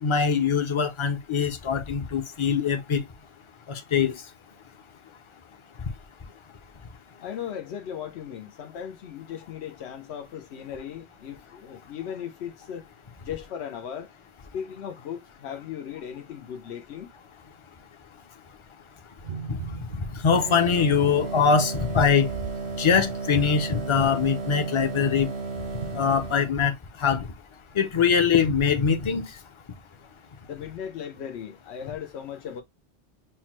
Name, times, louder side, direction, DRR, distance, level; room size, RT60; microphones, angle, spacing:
voice 1, 0.0-3.0 3.7-4.1 20.2-22.3 22.8-25.3 25.9-26.7 27.0-27.3 27.8-29.2, left 6 dB, 35° left, 0.5 m, -22 dB
voice 2, 7.2-12.9 13.2-14.1 14.5-17.1 30.4-32.6, left 8 dB, 90° left, 0.9 m, -37 dB
sound 1, 19.2-22.6 23.1-23.2, right 7 dB, 65° right, 0.8 m, -39 dB
sound 2, 20.3-26.6, right 4 dB, 80° right, 1.1 m, -34 dB
5.8 x 2.2 x 3.0 m
omnidirectional pair, 1.1 m